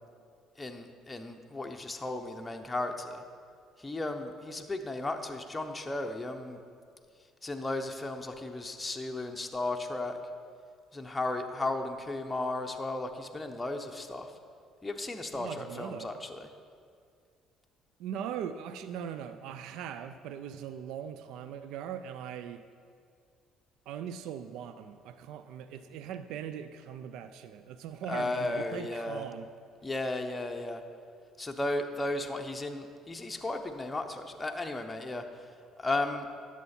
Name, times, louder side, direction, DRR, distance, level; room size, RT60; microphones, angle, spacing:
voice 1, 0.6-3.2 3.8-6.6 7.4-10.2 10.9-14.3 14.8-16.5 28.0-29.3 29.8-30.8 31.4-35.2 35.8-36.3, left 2 dB, 15° left, 3 dB, 0.8 m, -35 dB
voice 2, 15.3-16.1 18.0-22.6 23.9-29.5, right 8 dB, 75° right, 11 dB, 0.4 m, -40 dB
11.0 x 7.2 x 4.3 m, 2.2 s
supercardioid pair, 80°, 0 cm